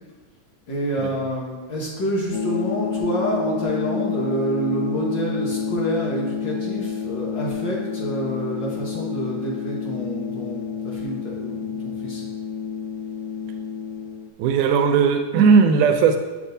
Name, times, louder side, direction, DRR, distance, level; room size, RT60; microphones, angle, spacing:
voice 1, 0.7-12.3, right 1 dB, 55° left, -4 dB, 1.3 m, -27 dB
sound 1, 2.3-14.3, left 6 dB, 80° left, 1.5 m, -29 dB
voice 2, 14.4-16.2, right 6 dB, 85° right, 6 dB, 2.0 m, -17 dB
8.3 x 6.0 x 2.7 m, 1.3 s
omnidirectional pair, 3.6 m